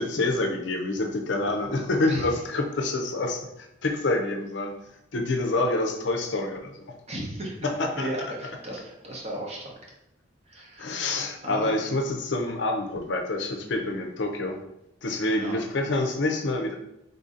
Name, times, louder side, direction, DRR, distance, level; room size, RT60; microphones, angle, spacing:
voice 1, 0.0-6.9 7.6-8.1 10.8-14.6 15.0-16.7, left 2 dB, 65° left, 3 dB, 0.6 m, -27 dB
voice 2, 7.1-9.9 10.5-11.1 11.4-11.8 13.6-14.0 15.3-15.5, right 1 dB, 30° right, -2 dB, 0.9 m, -36 dB
3.9 x 2.7 x 3.7 m, 0.82 s
head